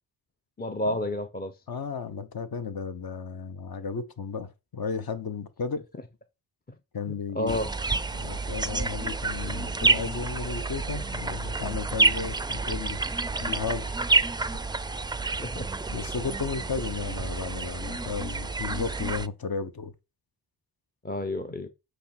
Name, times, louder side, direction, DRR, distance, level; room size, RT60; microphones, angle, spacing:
voice 1, 0.6-1.5 7.3-7.7 15.4-15.7 21.0-21.7, left 1 dB, 20° left, 0.8 m, -30 dB
voice 2, 1.7-5.8 6.9-7.6 8.1-13.0 13.4-13.9 14.5-14.6 15.9-19.9, left 5 dB, 50° left, 1.1 m, -34 dB
sound 1, 7.5-19.3, right 3 dB, 10° right, 0.4 m, -29 dB
8.4 x 3.3 x 5.9 m
cardioid pair, 70°, 44 cm